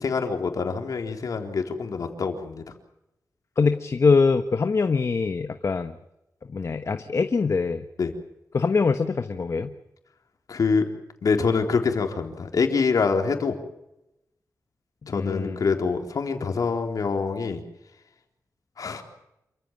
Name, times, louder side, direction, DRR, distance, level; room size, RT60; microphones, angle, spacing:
voice 1, 0.0-2.6 8.0-8.1 10.5-10.9 11.2-13.5 15.1-17.6 18.8-19.0, left 5 dB, 70° left, 4 dB, 3.9 m, -25 dB
voice 2, 3.6-5.9 6.5-7.8 8.5-9.7 15.1-15.6, left 4 dB, 50° left, 8 dB, 1.2 m, -23 dB
28.0 x 15.5 x 9.0 m, 0.89 s
wide cardioid pair, 100°, 6 cm